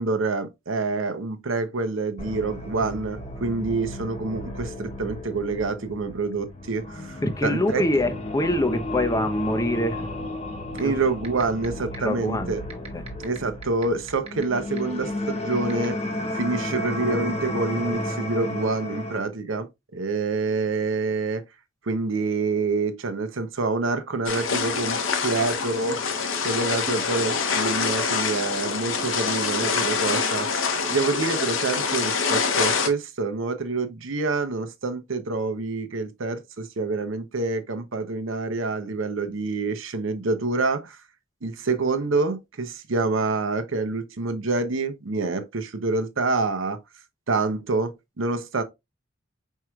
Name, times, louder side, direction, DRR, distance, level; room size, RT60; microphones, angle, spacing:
voice 1, 0.0-7.8 10.7-12.6 13.2-16.0 16.3-21.4 21.8-25.0 25.2-26.0 26.4-30.5 30.9-41.0 41.4-46.8 47.3-48.6, right 3 dB, 75° right, 0.8 m, -27 dB
sound 1, 2.2-19.2, left 1 dB, 30° left, 0.9 m, -33 dB
voice 2, 7.2-10.1 10.8-10.9 11.9-13.0, left 1 dB, 15° left, 0.6 m, -25 dB
sound 2, 10.8-10.9 11.2-11.7 11.9-12.0 12.7-14.4 14.8-14.9 15.7-15.9, right 6 dB, 30° right, 1.0 m, -37 dB
sound 3, 24.3-32.9, left 5 dB, 70° left, 0.8 m, -25 dB
4.6 x 4.6 x 2.4 m
head